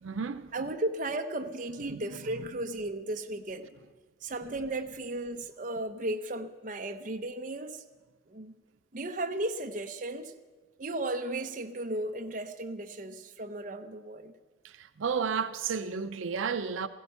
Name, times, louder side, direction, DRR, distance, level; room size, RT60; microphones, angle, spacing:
voice 1, 0.0-0.7 1.9-2.5 14.6-16.9, right 6 dB, 85° right, 0.5 m, -33 dB
voice 2, 0.5-3.7 4.2-7.8 8.3-8.5 8.9-10.4 10.8-14.3, right 1 dB, 40° right, 0.8 m, -35 dB
16.5 x 15.0 x 5.6 m
head